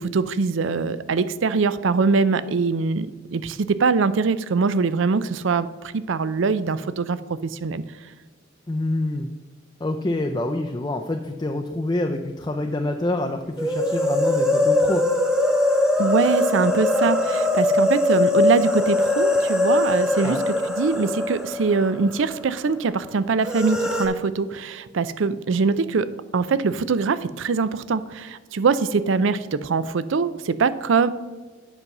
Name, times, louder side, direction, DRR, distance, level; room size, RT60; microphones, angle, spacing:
voice 1, 0.0-7.8 16.0-20.4 20.8-26.1 26.3-31.1, right 4 dB, 70° right, 15 dB, 0.4 m, -23 dB
voice 2, 8.7-9.3 9.8-15.0 20.2-20.4, left 2 dB, 20° left, 3 dB, 0.4 m, -26 dB
sound 1, 13.6-22.4 22.7-22.8 23.4-24.1, left 2 dB, 5° right, 0.8 m, -21 dB
8.1 x 5.4 x 5.9 m, 1.4 s
head